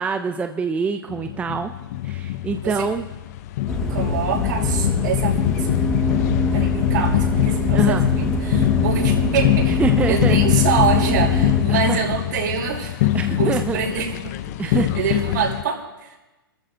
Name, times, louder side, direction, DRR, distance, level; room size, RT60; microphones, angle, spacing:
voice 1, 0.0-1.7 2.0-3.0 7.7-8.0 9.8-10.4 11.7-12.0 13.1-13.8 14.6-15.2, right 5 dB, 10° right, 7 dB, 0.5 m, -25 dB
sound 1, 1.1-15.6, left 14 dB, 45° left, 0.6 m, -22 dB
sound 2, 3.7-11.6, equal, 5° left, 1.5 m, -25 dB
voice 2, 3.9-5.7 6.2-9.8 10.1-16.3, right 7 dB, 55° right, -2 dB, 5.9 m, -26 dB
26.0 x 14.0 x 2.6 m, 1.1 s
hypercardioid pair, 120°, 12 cm